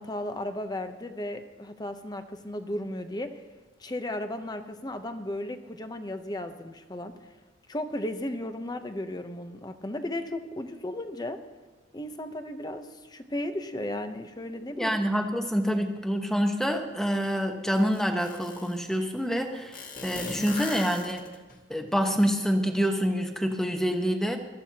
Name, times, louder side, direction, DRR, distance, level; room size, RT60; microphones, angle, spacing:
voice 1, 0.0-3.3 3.8-7.1 7.7-11.4 11.9-14.9, left 1 dB, 20° left, 8 dB, 0.9 m, -35 dB
voice 2, 14.8-21.2 21.7-24.4, equal, ahead, 4 dB, 1.1 m, -27 dB
sound 1, 17.2-17.3 17.7-18.8 19.7-21.5, left 3 dB, 45° left, 2.0 m, -38 dB
22.5 x 13.5 x 2.9 m, 1.3 s
head